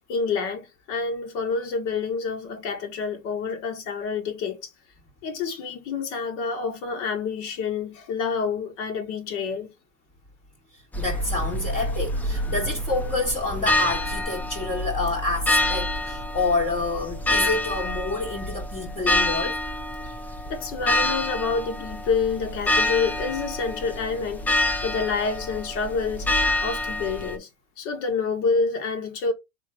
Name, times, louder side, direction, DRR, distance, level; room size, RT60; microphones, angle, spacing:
voice 1, 0.1-4.7 5.2-9.7 20.5-26.3 26.6-27.5 27.8-29.3, left 5 dB, 65° left, 1.7 m, -28 dB
sound 1, 10.9-27.4, left 1 dB, 5° left, 0.4 m, -27 dB
voice 2, 11.0-19.6, left 2 dB, 20° left, 1.1 m, -28 dB
3.7 x 2.9 x 4.3 m
supercardioid pair, 125°, 38 cm